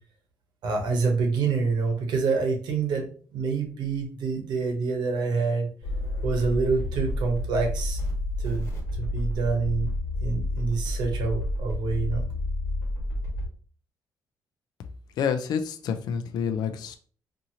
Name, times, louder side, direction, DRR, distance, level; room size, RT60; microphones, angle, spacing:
voice 1, 0.6-5.7 6.2-8.0 8.4-8.7 9.0-9.9 10.2-12.2, right 4 dB, 80° right, 2 dB, 0.8 m, -27 dB
sound 1, 5.8-13.5, left 1 dB, 45° left, 1.4 m, -30 dB
voice 2, 15.2-17.0, left 7 dB, 70° left, 8 dB, 0.4 m, -28 dB
2.8 x 2.5 x 2.7 m, 0.43 s
cardioid pair, 115°, 7 cm